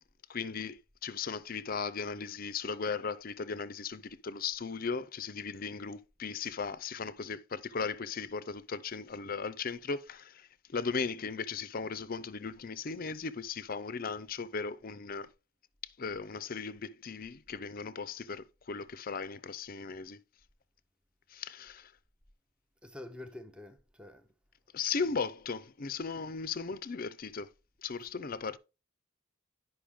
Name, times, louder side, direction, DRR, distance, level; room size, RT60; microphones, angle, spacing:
voice 1, 0.3-15.3 15.8-20.2 21.3-21.9 24.7-27.5 27.8-28.6, left 5 dB, 40° left, 0.5 m, -37 dB
voice 2, 22.8-24.2, left 2 dB, 5° right, 0.6 m, -47 dB
10.0 x 5.4 x 3.5 m
head